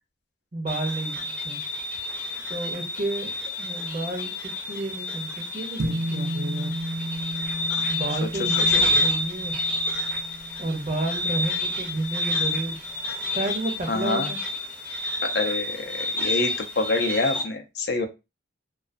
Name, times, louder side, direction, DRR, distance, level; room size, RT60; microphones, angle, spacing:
voice 1, 0.5-1.6 2.5-3.3 3.6-4.3 4.7-6.7 7.9-9.6 10.6-12.8 13.3-14.4, right 2 dB, 35° right, 3 dB, 0.5 m, -31 dB
sound 1, 0.7-17.4, left 2 dB, 5° left, 0.5 m, -29 dB
sound 2, 5.8-12.4, right 1 dB, 85° right, 0.4 m, -34 dB
voice 2, 8.1-8.8 13.9-14.3 15.2-18.1, left 3 dB, 60° left, 5 dB, 0.5 m, -27 dB
2.3 x 2.3 x 2.4 m, 0.25 s
head